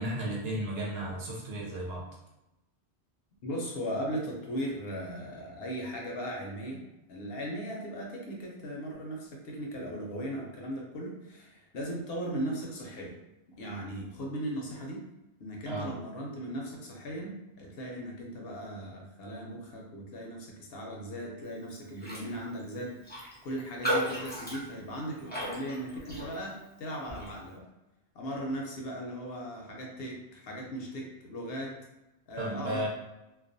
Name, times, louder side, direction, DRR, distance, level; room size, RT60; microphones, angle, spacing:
voice 1, 0.0-2.0 15.7-16.0 32.4-32.9, right 1 dB, 70° right, -3 dB, 0.9 m, -34 dB
voice 2, 3.4-13.2 13.6-15.0 15.4-27.7 28.1-31.8 32.3-32.9, equal, 65° left, -1 dB, 0.8 m, -38 dB
Raindrop, 22.0-22.3 22.6-22.7 23.1-26.6 27.1-27.3, equal, 10° left, 0.6 m, -35 dB
2.3 x 2.2 x 2.5 m, 0.95 s
omnidirectional pair, 1.1 m